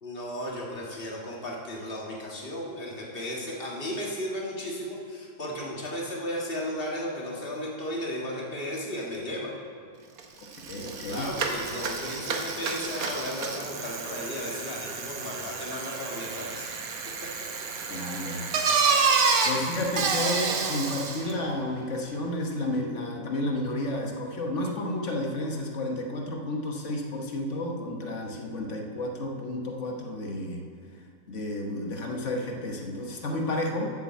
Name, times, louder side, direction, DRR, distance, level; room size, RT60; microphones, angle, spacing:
voice 1, 0.0-9.5 11.0-16.7, left 1 dB, 40° left, -3 dB, 1.8 m, -35 dB
Bicycle, 10.2-10.3 10.5-21.3, right 5 dB, 75° right, 1.4 m, -29 dB
voice 2, 10.4-11.3 17.9-18.6 18.9-30.6 31.3-33.9, left 1 dB, 55° left, 1 dB, 1.3 m, -31 dB
8.3 x 6.8 x 7.3 m, 2.3 s
omnidirectional pair, 1.6 m